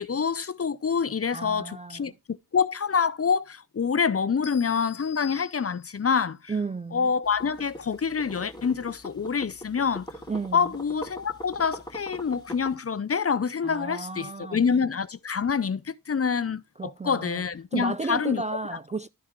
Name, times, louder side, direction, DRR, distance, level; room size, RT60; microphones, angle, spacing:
voice 1, 0.0-6.5 6.9-10.1 10.5-18.4, left 6 dB, 35° left, 0.6 m, -26 dB
voice 2, 1.3-2.1 6.5-7.1 10.3-10.7 13.6-14.6 16.8-17.4 17.7-19.1, right 3 dB, 20° right, 0.3 m, -33 dB
sound 1, 4.4-6.2, left 7 dB, 90° left, 1.2 m, -46 dB
Coffee Percolating Figuried, 7.2-12.7, left 1 dB, 10° left, 2.7 m, -43 dB
12.5 x 4.2 x 3.7 m
cardioid pair, 55°, 39 cm